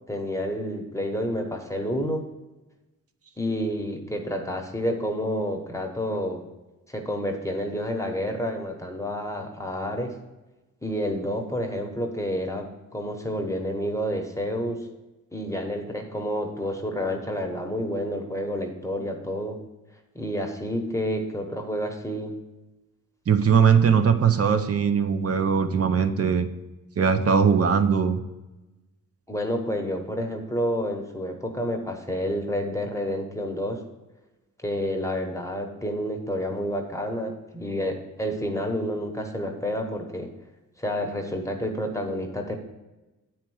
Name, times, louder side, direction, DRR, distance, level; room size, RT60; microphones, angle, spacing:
voice 1, 0.1-2.2 3.4-6.4 6.9-10.2 10.8-14.9 15.3-19.6 20.1-22.4 29.3-33.8 34.6-40.3 40.8-42.6, equal, 10° left, 2 dB, 1.1 m, -29 dB
voice 2, 23.3-26.5 27.0-28.2, right 6 dB, 45° right, 9 dB, 0.8 m, -20 dB
9.1 x 4.5 x 6.2 m, 1.1 s
cardioid pair, 90°, 32 cm